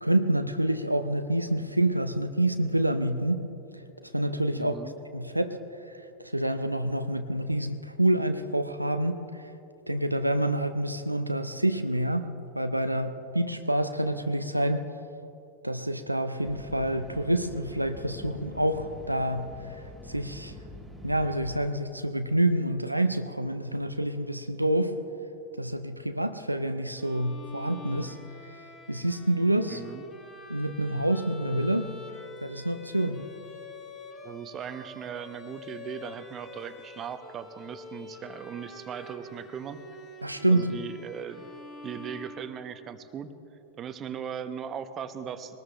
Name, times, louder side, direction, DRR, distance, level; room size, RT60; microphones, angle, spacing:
voice 1, 0.0-3.4 4.0-4.8 5.1-5.6 5.8-9.4 9.9-12.3 12.5-14.9 15.6-20.5 21.0-24.9 25.6-28.2 28.9-29.8 30.5-31.9 32.4-33.2 40.2-40.7, right 1 dB, 85° right, 8 dB, 0.6 m, -27 dB
voice 2, 4.6-4.9 29.7-30.0 34.2-39.8 40.5-41.5 41.8-43.3 43.8-45.6, right 8 dB, 25° right, 11 dB, 1.0 m, -38 dB
sound 1, 16.4-21.6, left 2 dB, ahead, 2.5 m, -45 dB
Bowed string instrument, 27.0-42.9, left 3 dB, 30° left, 3.5 m, -46 dB
22.0 x 19.0 x 3.3 m, 2.9 s
figure-of-eight pair, 90°, 0 cm